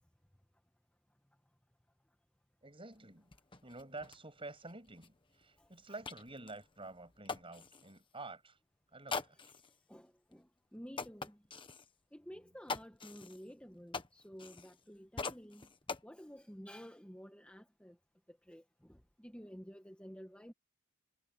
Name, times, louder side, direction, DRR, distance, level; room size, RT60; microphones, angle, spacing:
voice 1, 2.6-3.3 3.6-8.6 8.9-9.4, right 2 dB, 25° right, 7.4 m, -49 dB
sound 1, 2.9-3.0 3.3-8.0 9.1-9.8 10.3-10.4 10.9-11.9 12.7-14.9 15.2-16.0, left 4 dB, 25° left, 1.4 m, -44 dB
voice 2, 9.9-11.4 12.1-15.6 16.0-18.0 18.3-20.5, equal, 5° left, 1.5 m, -52 dB
head